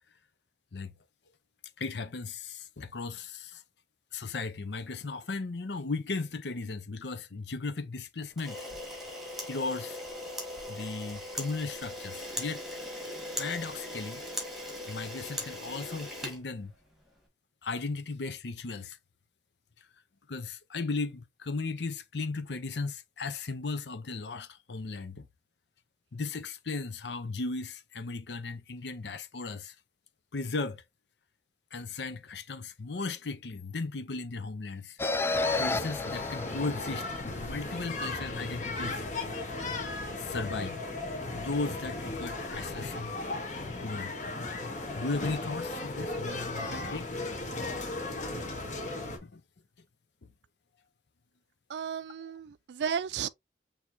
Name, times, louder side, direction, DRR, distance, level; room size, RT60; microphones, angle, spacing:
voice 1, 1.8-3.6 4.1-8.6 9.5-10.0 10.7-12.6 13.4-14.2 14.9-16.7 17.6-19.0 20.3-25.3 26.1-29.7 30.3-30.8 31.7-35.0 35.3-39.0 39.3-39.4 40.2-40.8 41.3-43.2 43.8-44.1 44.6-44.7 44.9-47.1 49.2-49.4, left 3 dB, 80° left, 0.7 m, -36 dB
Camera, 8.3-17.1, left 1 dB, ahead, 1.7 m, -39 dB
sound 1, 35.0-37.5, left 2 dB, 15° left, 0.3 m, -31 dB
sound 2, 35.3-49.2, left 2 dB, 45° left, 1.2 m, -36 dB
voice 2, 51.7-53.3, right 7 dB, 75° right, 0.4 m, -34 dB
6.4 x 2.9 x 2.7 m
head